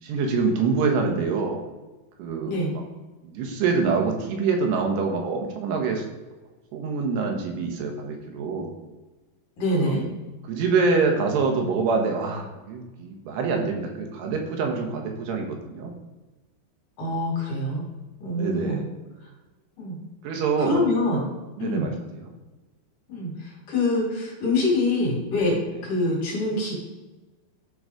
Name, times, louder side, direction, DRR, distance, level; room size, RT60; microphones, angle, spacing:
voice 1, 0.0-1.6 2.2-2.5 3.2-6.1 6.7-8.7 9.8-10.0 10.5-15.9 18.3-18.9 20.2-20.9 21.6-22.3 25.7-25.8, right 4 dB, 80° right, 2 dB, 3.2 m, -25 dB
voice 2, 9.6-10.0 17.0-17.8 18.2-18.8 19.8-20.0 20.6-21.2 21.6-21.9 23.1-26.7, left 2 dB, 50° left, -3 dB, 3.9 m, -25 dB
12.0 x 4.0 x 4.9 m, 1.2 s
omnidirectional pair, 4.9 m